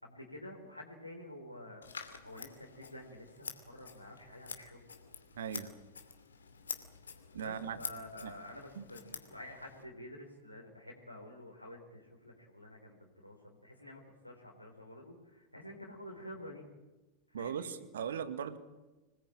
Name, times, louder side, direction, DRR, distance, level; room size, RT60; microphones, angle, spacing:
voice 1, 0.0-1.9 2.2-4.8 7.4-16.7 17.3-17.8, left 1 dB, 90° left, -1 dB, 3.9 m, -49 dB
Scissors, 1.8-9.8, left 5 dB, 70° left, 2.6 m, -48 dB
voice 2, 5.4-5.7 7.3-7.8 8.2-8.3 8.8-8.9 17.3-18.6, right 8 dB, 60° right, 12 dB, 1.9 m, -39 dB
26.0 x 19.5 x 8.8 m, 1.1 s
figure-of-eight pair, 90°, 0 cm